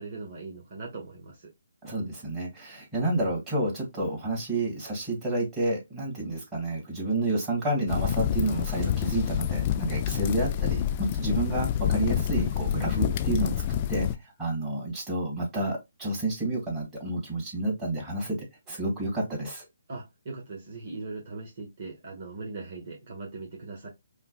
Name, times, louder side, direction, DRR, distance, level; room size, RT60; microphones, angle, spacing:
voice 1, 0.0-1.5 19.9-23.9, right 3 dB, 45° right, 1.2 m, -40 dB
voice 2, 1.8-18.4 18.7-19.7, right 2 dB, 15° right, 2.0 m, -30 dB
sound 1, 7.9-14.2, left 11 dB, 30° left, 0.4 m, -27 dB
5.3 x 2.3 x 2.3 m
figure-of-eight pair, 145°, 0 cm